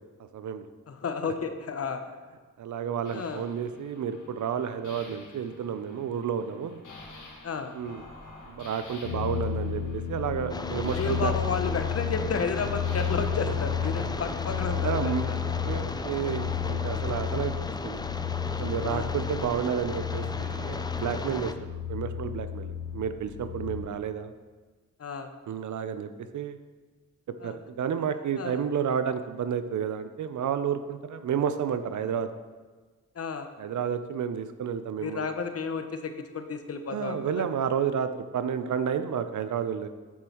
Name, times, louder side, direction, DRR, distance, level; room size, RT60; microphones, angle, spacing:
voice 1, 0.2-0.7 1.2-1.3 2.6-6.8 7.7-8.0 8.5-11.3 14.8-15.3 15.6-17.6 17.8-18.0 18.6-21.5 21.9-24.3 25.5-26.6 27.4-32.3 33.6-35.3 36.9-39.9, right 7 dB, 65° right, 10 dB, 0.5 m, -31 dB
voice 2, 0.9-2.0 3.1-3.4 7.4-7.7 10.9-15.4 18.9-19.1 25.0-25.3 27.4-27.6 28.4-28.6 33.2-33.5 35.0-37.5, left 5 dB, 50° left, 7 dB, 0.7 m, -32 dB
sound 1, 3.0-14.3, left 2 dB, 70° left, 1.6 m, -50 dB
sound 2, 9.0-23.8, left 8 dB, 90° left, 1.0 m, -32 dB
sound 3, 10.5-21.5, left 3 dB, 15° left, 0.3 m, -36 dB
8.2 x 6.1 x 3.0 m, 1.4 s
cardioid pair, 85°, 32 cm